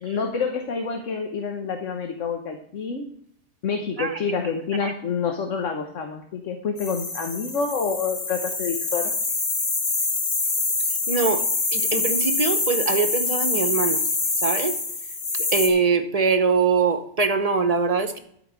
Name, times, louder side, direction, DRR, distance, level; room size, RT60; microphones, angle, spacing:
voice 1, 0.0-3.1 3.6-9.1, left 5 dB, 85° left, 4 dB, 1.4 m, -28 dB
sound 1, 6.8-15.7, left 3 dB, 45° left, 1.5 m, -25 dB
voice 2, 11.1-11.4 11.7-14.0 14.4-14.7 15.5-18.2, right 4 dB, 35° right, 7 dB, 0.8 m, -22 dB
12.0 x 5.1 x 6.1 m, 0.69 s
omnidirectional pair, 1.2 m